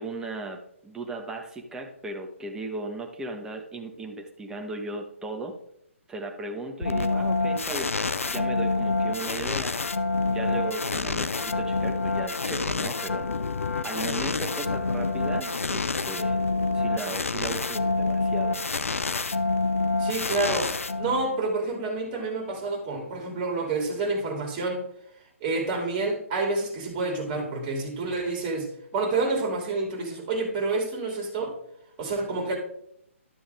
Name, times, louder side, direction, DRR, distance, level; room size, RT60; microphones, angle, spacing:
voice 1, 0.0-5.5 6.1-7.9 8.3-9.7 10.3-13.3 13.8-16.4 16.7-18.6, right 3 dB, 10° right, 3 dB, 1.2 m, -36 dB
sound 1, 6.8-21.5, left 3 dB, 75° left, 0.7 m, -27 dB
voice 2, 20.0-20.7 21.0-24.8 25.4-28.7 28.9-31.5 32.0-32.6, right 3 dB, 25° right, 1 dB, 3.0 m, -28 dB
12.0 x 6.9 x 3.6 m, 0.73 s
figure-of-eight pair, 135°, 7 cm